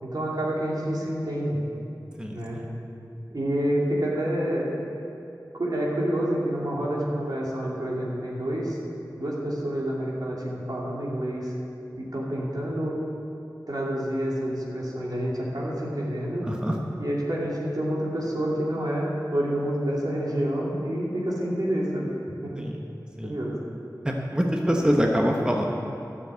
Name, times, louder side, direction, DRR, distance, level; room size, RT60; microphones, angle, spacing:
voice 1, 0.0-1.6 2.3-2.6 3.3-4.7 5.5-8.8 9.2-11.5 12.0-12.9 13.7-16.4 17.0-22.1 22.4-22.6 23.2-23.6, right 1 dB, 70° right, -5 dB, 2.9 m, -28 dB
voice 2, 2.2-2.7 16.4-16.8 22.6-22.8 23.2-23.4 24.0-25.7, equal, 10° right, 0 dB, 1.0 m, -25 dB
12.0 x 7.2 x 8.1 m, 2.7 s
wide cardioid pair, 55°, 7 cm